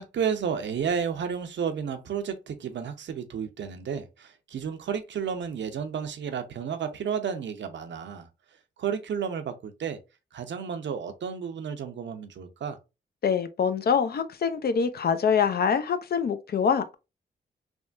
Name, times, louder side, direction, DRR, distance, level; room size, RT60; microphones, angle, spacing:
voice 1, 0.0-8.3 8.8-10.0 10.3-12.8, right 7 dB, 70° right, 0.6 m, -32 dB
voice 2, 13.2-16.9, left 6 dB, 55° left, 0.5 m, -25 dB
3.4 x 2.1 x 2.4 m
cardioid pair, 55°, 20 cm